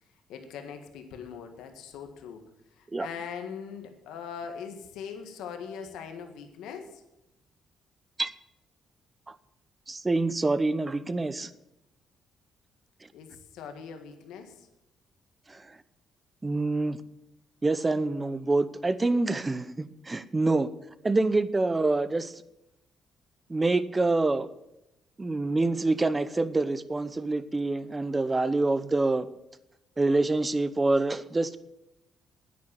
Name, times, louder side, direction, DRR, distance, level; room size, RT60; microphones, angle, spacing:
voice 1, 0.3-2.4 2.7-7.0 13.1-14.7, left 7 dB, 90° left, 5 dB, 1.7 m, -41 dB
voice 2, 9.9-11.5 15.5-15.7 16.4-17.0 17.6-20.7 21.0-22.3 23.5-24.5 25.2-29.3 30.0-31.6, right 2 dB, 20° right, 14 dB, 0.8 m, -26 dB
9.7 x 9.5 x 7.4 m, 0.87 s
cardioid pair, 90°, 0 cm